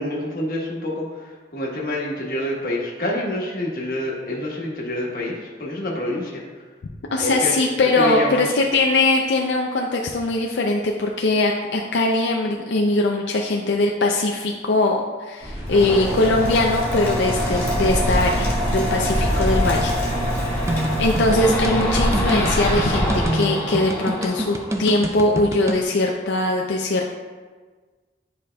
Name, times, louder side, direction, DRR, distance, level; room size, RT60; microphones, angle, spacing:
voice 1, 0.0-6.4 7.2-7.5 7.9-8.5, left 1 dB, 50° left, -3 dB, 1.2 m, -27 dB
voice 2, 7.1-19.9 21.0-27.1, left 2 dB, 85° left, 1 dB, 0.5 m, -21 dB
sound 1, 15.4-23.2, equal, 40° right, 1.4 m, -26 dB
sound 2, 15.7-25.2, equal, 10° left, 1.7 m, -26 dB
sound 3, 20.7-25.8, right 1 dB, 15° right, 0.4 m, -27 dB
9.8 x 5.0 x 2.2 m, 1.4 s
head